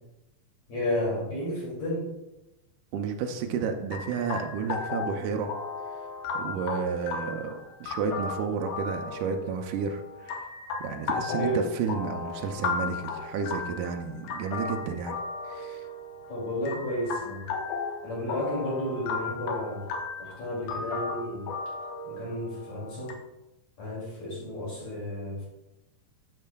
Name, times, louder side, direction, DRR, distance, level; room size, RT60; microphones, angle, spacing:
voice 1, 0.7-2.1 11.3-11.6 16.3-17.5 18.0-19.8 20.2-21.5 22.0-23.1 23.8-25.4, equal, 50° left, -5 dB, 3.5 m, -32 dB
voice 2, 2.9-5.5 6.3-10.5 10.8-15.2 15.4-15.9, right 6 dB, 85° right, 4 dB, 1.8 m, -31 dB
sound 1, 3.9-23.1, left 4 dB, 85° left, 2.8 m, -35 dB
12.0 x 6.5 x 2.3 m, 0.95 s
omnidirectional pair, 4.3 m